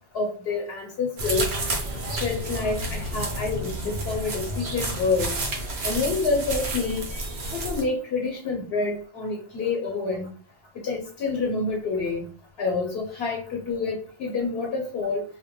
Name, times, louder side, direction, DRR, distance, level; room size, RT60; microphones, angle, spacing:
voice 1, 0.1-1.5 2.2-5.3 5.8-10.3 10.8-12.3 12.6-15.2, left 4 dB, 85° left, 0 dB, 0.9 m, -28 dB
sound 1, 1.2-7.8, right 1 dB, 85° right, 0.9 m, -30 dB
2.2 x 2.1 x 2.8 m, 0.40 s
omnidirectional pair, 1.0 m